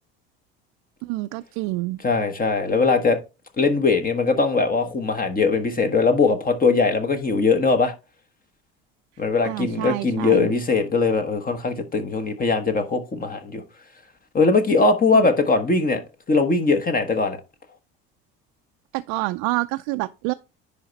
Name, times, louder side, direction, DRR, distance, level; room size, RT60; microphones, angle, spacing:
voice 1, 1.0-2.0 9.4-10.6 15.1-15.3 18.9-20.3, right 21 dB, 65° right, 0.5 m, -27 dB
voice 2, 2.0-3.2 3.6-7.9 9.2-13.6 14.3-16.0 16.3-17.4, left 4 dB, 30° left, 1.3 m, -20 dB
10.0 x 3.5 x 4.0 m
hypercardioid pair, 75°, 30 cm